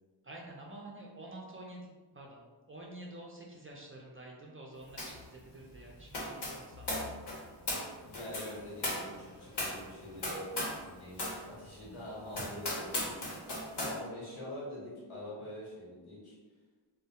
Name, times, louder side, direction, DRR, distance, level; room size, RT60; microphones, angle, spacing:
voice 1, 0.2-1.9 2.1-2.4 2.7-7.1 12.4-12.5, right 1 dB, 30° right, -2 dB, 0.3 m, -48 dB
sound 1, 5.0-5.3 5.5-10.9 11.1-11.4 11.8-11.9 12.3-14.0, left 1 dB, 60° left, 0.8 m, -37 dB
voice 2, 8.0-16.4, left 1 dB, 85° left, -6 dB, 1.1 m, -45 dB
2.2 x 2.1 x 2.8 m, 1.3 s
wide cardioid pair, 65°, 48 cm